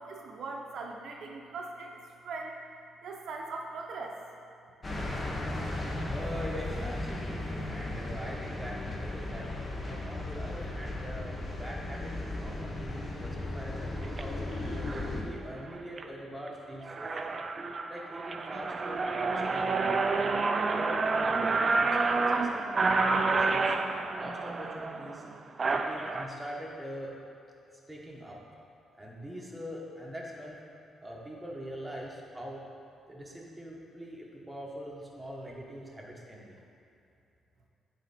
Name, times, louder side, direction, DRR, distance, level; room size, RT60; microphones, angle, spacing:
voice 1, 0.0-2.6 3.0-4.2, right 3 dB, 70° right, 0 dB, 0.7 m, -40 dB
sound 1, 4.8-15.2, left 2 dB, 30° left, 1.0 m, -36 dB
voice 2, 6.1-14.4 14.9-17.5 17.9-22.5 22.9-23.7 24.1-25.2 25.6-27.1 27.7-28.4 28.9-30.6 31.0-32.6 33.1-36.6, equal, 5° right, -3 dB, 1.3 m, -43 dB
sound 2, 14.0-14.2 14.9-15.1 15.6-16.0 16.5-16.6 16.8-26.2, right 3 dB, 40° right, 0.4 m, -29 dB
9.1 x 4.1 x 4.3 m, 2.6 s
cardioid pair, 95°, 0 cm